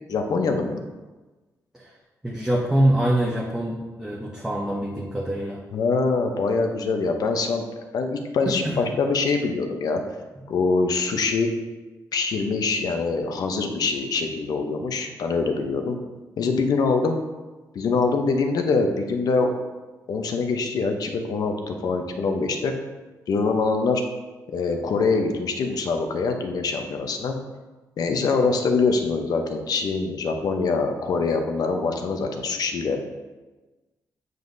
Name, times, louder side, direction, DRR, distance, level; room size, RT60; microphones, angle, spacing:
voice 1, 0.1-0.8 5.7-10.0 10.5-11.5 12.1-16.0 16.4-17.2 17.7-19.5 20.1-22.7 23.3-24.0 24.5-27.4 28.0-33.0, left 4 dB, 65° left, 5 dB, 0.7 m, -24 dB
voice 2, 2.2-5.6 8.5-8.8, right 1 dB, 10° right, -3 dB, 0.7 m, -24 dB
7.7 x 5.3 x 2.7 m, 1.2 s
cardioid pair, 110°, 7 cm